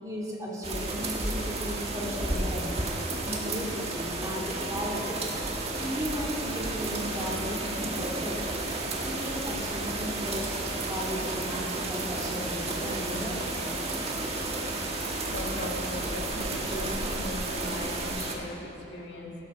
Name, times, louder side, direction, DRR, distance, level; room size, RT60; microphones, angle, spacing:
voice 1, 0.0-5.2 5.8-8.4 9.0-13.4, equal, 20° right, -4 dB, 2.3 m, -36 dB
sound 1, 0.6-18.3, right 2 dB, 35° right, 1.5 m, -32 dB
voice 2, 15.3-19.3, left 1 dB, 65° left, -1 dB, 2.0 m, -38 dB
17.0 x 12.5 x 4.3 m, 2.8 s
head